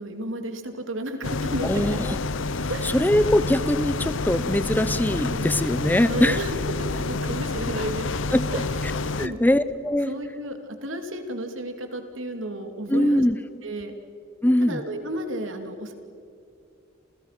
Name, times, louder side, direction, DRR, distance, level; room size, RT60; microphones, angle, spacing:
voice 1, 0.0-2.0 2.7-3.0 5.3-5.4 6.0-8.1 8.5-8.6 9.2-9.4 10.1-13.2 13.6-13.9 14.6-15.9, right 1 dB, 80° right, 6 dB, 2.9 m, -32 dB
sound 1, 1.2-9.3, left 3 dB, 75° left, 0.9 m, -28 dB
voice 2, 1.6-2.2 2.5-6.4 8.3-8.9 9.2-10.1 12.9-13.4 14.4-14.8, left 1 dB, 10° left, 14 dB, 0.6 m, -22 dB
30.0 x 28.5 x 6.0 m, 2.4 s
head